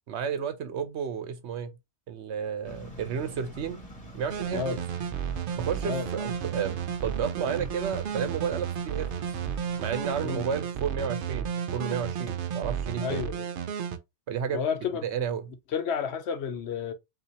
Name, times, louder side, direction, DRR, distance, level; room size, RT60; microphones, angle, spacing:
voice 1, 0.1-1.7 2.1-3.8 4.1-4.8 5.5-9.1 9.8-13.2 14.3-14.6 15.0-15.5, right 7 dB, 80° right, 1.0 m, -32 dB
sound 1, 2.6-10.6, right 1 dB, 30° left, 2.2 m, -47 dB
sound 2, 4.3-14.0, right 8 dB, 60° right, 0.7 m, -33 dB
voice 2, 13.0-13.5 14.5-15.0 15.7-16.9, left 6 dB, 70° left, 1.0 m, -31 dB
5.5 x 2.8 x 2.9 m
omnidirectional pair, 1.2 m